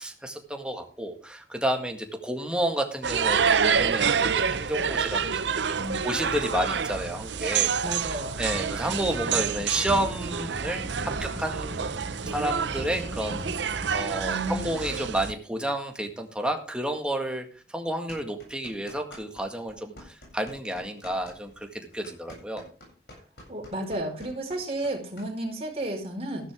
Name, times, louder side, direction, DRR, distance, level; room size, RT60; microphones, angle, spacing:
voice 1, 0.0-5.8 6.0-7.7 8.1-11.9 12.3-22.6, right 1 dB, 5° right, 4 dB, 1.8 m, -31 dB
sound 1, 3.0-15.3, right 6 dB, 85° right, 0.7 m, -28 dB
voice 2, 5.7-6.1 7.8-8.4 14.2-14.6 23.5-26.5, right 1 dB, 35° right, 0 dB, 4.8 m, -32 dB
sound 2, 8.4-14.0, right 1 dB, 50° left, 6.5 m, -40 dB
sound 3, 18.1-19.4 19.7-25.3, left 1 dB, 65° left, 7.8 m, -48 dB
14.0 x 12.0 x 3.7 m, 0.36 s
head